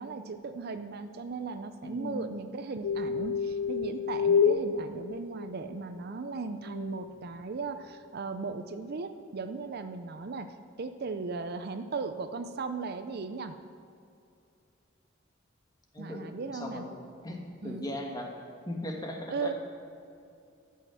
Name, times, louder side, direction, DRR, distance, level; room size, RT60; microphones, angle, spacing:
voice 1, 0.0-13.5 16.0-16.8 17.6-17.9 19.3-19.5, right 4 dB, 50° right, 9 dB, 0.5 m, -37 dB
voice 2, 1.8-2.2 15.9-16.2 16.5-16.9 17.2-17.4 17.6-18.3 18.6-19.5, left 1 dB, 20° left, 1 dB, 1.4 m, -37 dB
sound 1, 2.8-5.8 6.7-7.1, left 6 dB, 70° left, 0.4 m, -28 dB
13.0 x 5.6 x 7.6 m, 2.5 s
head